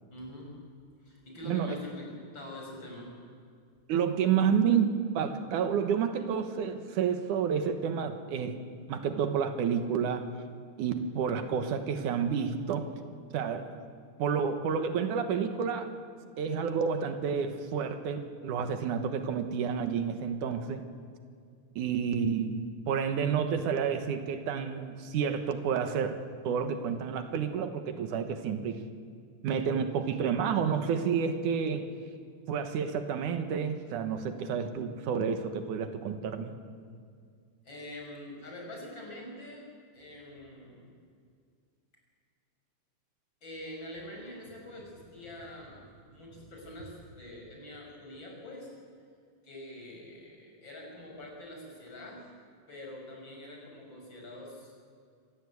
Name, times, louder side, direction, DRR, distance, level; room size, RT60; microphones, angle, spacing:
voice 1, 0.1-0.6 1.0-2.1 2.3-3.1 37.6-39.7 39.9-40.9 43.4-48.7 49.4-52.3 52.7-54.7, left 1 dB, 35° left, -1 dB, 6.6 m, -45 dB
voice 2, 1.4-1.8 3.9-8.6 8.9-10.3 10.8-12.9 13.3-13.8 14.2-16.0 16.4-20.8 21.8-28.8 29.4-31.9 32.5-36.6, right 7 dB, 80° right, 8 dB, 2.8 m, -30 dB
26.5 x 16.5 x 8.4 m, 2.2 s
omnidirectional pair, 3.5 m